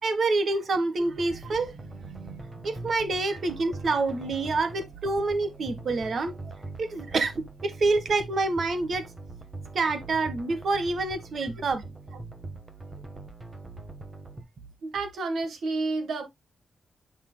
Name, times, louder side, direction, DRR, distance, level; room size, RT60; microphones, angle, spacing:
voice 1, 0.0-6.3 6.8-7.3 7.6-9.1 9.7-11.8, right 3 dB, 45° right, 1.4 m, -27 dB
sound 1, 1.0-14.4, right 3 dB, 20° right, 1.3 m, -42 dB
voice 2, 14.8-16.3, right 3 dB, 70° right, 1.8 m, -30 dB
8.3 x 6.0 x 2.2 m
wide cardioid pair, 160°, 0 cm